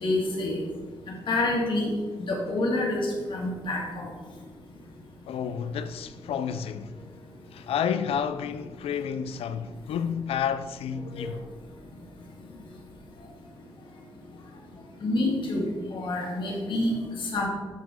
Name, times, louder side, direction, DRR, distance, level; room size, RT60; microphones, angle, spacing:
voice 1, 0.0-0.6 1.3-1.9 2.2-4.1 15.0-15.6 15.9-16.9 17.3-17.5, left 2 dB, 55° left, 2.0 m, -27 dB
voice 2, 5.3-6.9 7.5-11.4, left 7 dB, 80° left, 0.5 m, -30 dB
12.5 x 5.0 x 3.7 m
cardioid pair, 135°, 10 cm